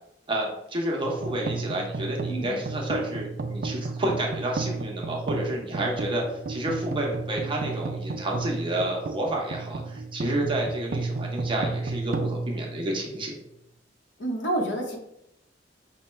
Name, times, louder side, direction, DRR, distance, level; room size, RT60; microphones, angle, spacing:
voice 1, 0.3-13.3, right 1 dB, 30° right, -1 dB, 0.9 m, -30 dB
sound 1, 1.0-13.4, right 3 dB, 55° right, 0.4 m, -33 dB
voice 2, 2.3-2.6 14.2-15.0, right 1 dB, 90° left, 1 dB, 1.0 m, -29 dB
5.5 x 2.2 x 3.2 m, 0.79 s
head